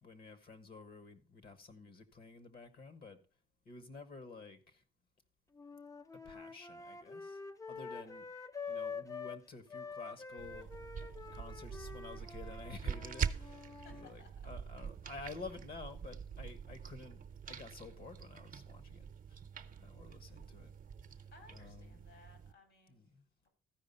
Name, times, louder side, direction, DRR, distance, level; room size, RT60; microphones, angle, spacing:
voice 1, 0.0-3.2 3.6-4.8 6.2-7.4 7.7-8.3 8.7-10.7 11.3-19.4 19.8-20.7 21.5-22.0 22.9-23.2, left 3 dB, 50° left, 1.4 m, -51 dB
sound 1, 5.6-9.4 9.7-14.1, left 5 dB, 15° left, 0.6 m, -46 dB
sound 2, 10.4-22.5, right 7 dB, 45° right, 0.8 m, -44 dB
voice 2, 13.8-14.3 19.5-20.0 20.2-20.4 21.3-23.0 23.4-23.5, left 4 dB, 75° left, 4.7 m, -61 dB
14.0 x 5.0 x 5.5 m
cardioid pair, 90°, 20 cm